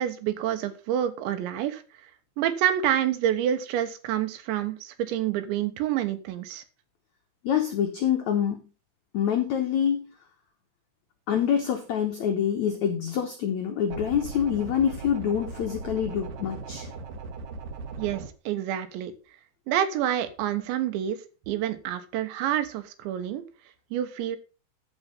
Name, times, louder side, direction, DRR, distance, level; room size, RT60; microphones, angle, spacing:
voice 1, 0.0-1.8 2.4-6.6 18.0-19.1 19.7-21.2 21.5-23.4 23.9-24.4, right 11 dB, 90° right, 10 dB, 3.5 m, -28 dB
voice 2, 7.4-8.6 9.1-10.0 11.3-16.9, left 8 dB, 90° left, 5 dB, 1.6 m, -26 dB
sound 1, 13.9-18.3, right 4 dB, 60° right, 2.4 m, -38 dB
13.5 x 5.6 x 5.4 m, 0.34 s
omnidirectional pair, 5.0 m